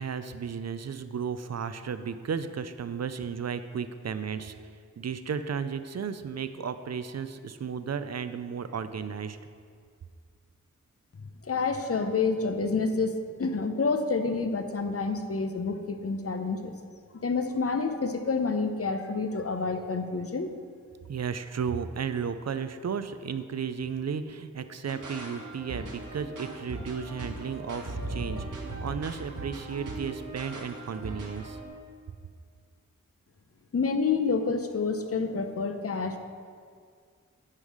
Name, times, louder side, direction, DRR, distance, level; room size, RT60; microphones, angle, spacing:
voice 1, 0.0-4.5 5.0-9.4 21.1-31.6, right 6 dB, 55° right, 11 dB, 0.5 m, -34 dB
voice 2, 11.4-16.8 17.2-20.5 33.7-36.2, left 4 dB, 45° left, 7 dB, 0.7 m, -28 dB
sound 1, 24.9-31.7, right 2 dB, 70° right, 1.5 m, -38 dB
9.9 x 5.5 x 4.9 m, 2.1 s
wide cardioid pair, 65°, 32 cm